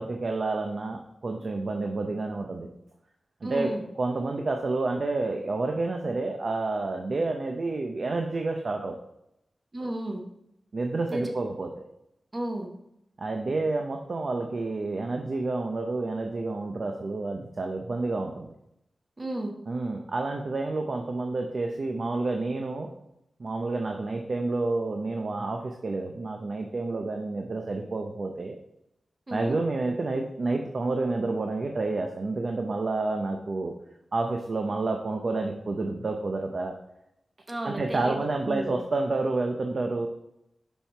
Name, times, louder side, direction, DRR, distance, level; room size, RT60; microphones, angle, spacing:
voice 1, 0.0-2.7 3.4-3.7 4.0-9.0 10.7-11.7 13.2-18.5 19.7-22.9 23.4-28.6 29.3-33.7 34.1-36.8 37.6-40.1, right 3 dB, 50° right, 3 dB, 0.7 m, -29 dB
voice 2, 3.4-3.8 9.7-10.2 11.1-11.3 12.3-12.7 19.2-19.5 29.3-29.6 37.5-38.8, right 1 dB, 30° right, 2 dB, 1.3 m, -33 dB
7.2 x 5.6 x 4.4 m, 0.81 s
wide cardioid pair, 120°, 0 cm